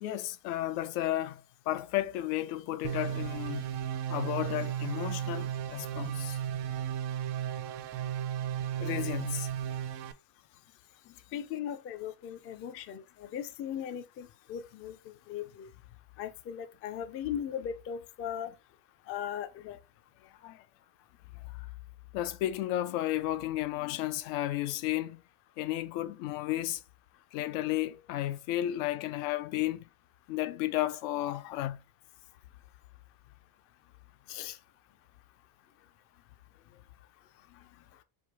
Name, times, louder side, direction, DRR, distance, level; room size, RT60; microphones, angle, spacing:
voice 1, 0.0-3.7 4.1-6.4 8.8-9.5 11.1-11.2 20.4-20.6 21.5-21.7 22.1-25.2 25.6-26.8 27.3-29.9 30.3-31.8, left 14 dB, 80° left, 0.7 m, -33 dB
sound 1, 2.8-10.1, right 10 dB, 65° right, 0.6 m, -34 dB
voice 2, 11.3-15.0 15.3-15.7 16.2-18.5 19.1-19.8 34.3-34.6, left 9 dB, 30° left, 0.4 m, -38 dB
3.6 x 2.8 x 4.6 m
cardioid pair, 145°, 47 cm